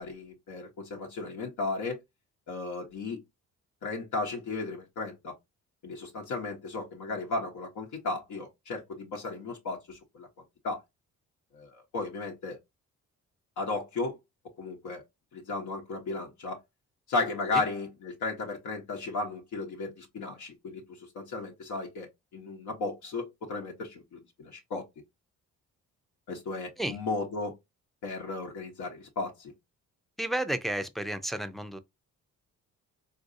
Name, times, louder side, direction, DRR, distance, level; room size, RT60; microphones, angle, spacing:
voice 1, 0.0-2.0 2.5-3.2 3.8-5.3 5.8-10.3 10.6-10.8 11.5-12.6 13.6-14.2 14.6-15.0 15.3-16.6 17.1-24.8 26.3-27.5 28.0-29.5, left 3 dB, 75° left, 1.0 m, -35 dB
voice 2, 30.2-31.8, right 1 dB, ahead, 0.4 m, -32 dB
3.8 x 2.6 x 2.6 m
cardioid pair, 90°, 30 cm